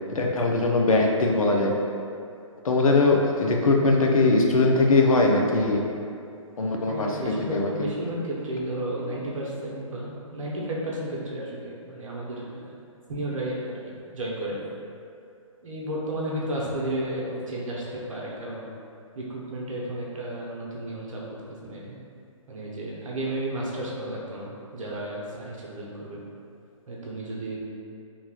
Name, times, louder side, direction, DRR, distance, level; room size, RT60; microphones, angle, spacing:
voice 1, 0.1-1.7 2.6-5.8 6.6-7.2 7.5-7.9, left 2 dB, 85° left, 0 dB, 0.5 m, -21 dB
voice 2, 6.9-12.7 13.1-13.8 14.1-14.6 15.6-18.7 19.2-22.0 22.5-26.2 26.9-27.6, right 1 dB, 70° right, -4 dB, 0.8 m, -33 dB
2.9 x 2.3 x 2.9 m, 2.5 s
hypercardioid pair, 140°, 17 cm